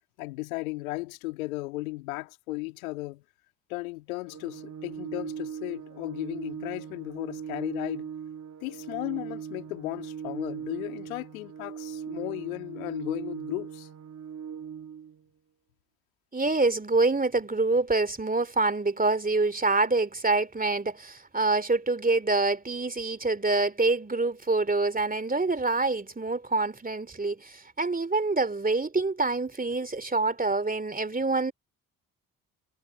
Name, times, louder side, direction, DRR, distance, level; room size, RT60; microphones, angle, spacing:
voice 1, 0.2-3.2 3.7-8.1 8.6-13.9, left 21 dB, 80° left, 2.3 m, -35 dB
Organ, 4.3-15.2, right 8 dB, 40° right, 1.5 m, -39 dB
voice 2, 16.3-31.5, right 3 dB, 20° right, 2.7 m, -26 dB
figure-of-eight pair, 40°, 41 cm